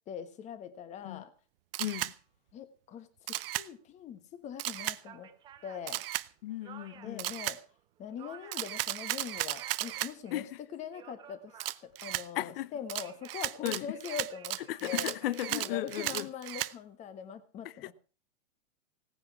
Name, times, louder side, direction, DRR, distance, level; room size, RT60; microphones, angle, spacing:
voice 1, 0.1-1.3 2.0-2.1 2.5-3.1 3.4-5.3 5.6-6.0 6.9-7.6 8.0-10.4 10.7-15.1 15.5-17.9, left 8 dB, 20° left, 1.3 m, -42 dB
Camera, 1.7-2.1 3.3-3.7 4.6-5.0 5.9-6.3 7.2-7.6 8.5-10.1 11.6-12.3 12.9-16.7, right 15 dB, 50° right, 0.6 m, -35 dB
voice 2, 1.8-2.1 6.4-7.3 10.3-10.6 12.3-12.7 13.6-14.0 14.7-16.3 17.6-17.9, left 14 dB, 50° left, 0.8 m, -36 dB
sound 1, 4.5-4.6 5.0-7.3 7.7-8.8 9.1-10.4 10.8-12.0 12.7-13.5 13.9-16.2, right 9 dB, 10° right, 0.7 m, -54 dB
17.5 x 9.7 x 5.8 m
supercardioid pair, 160°, 37 cm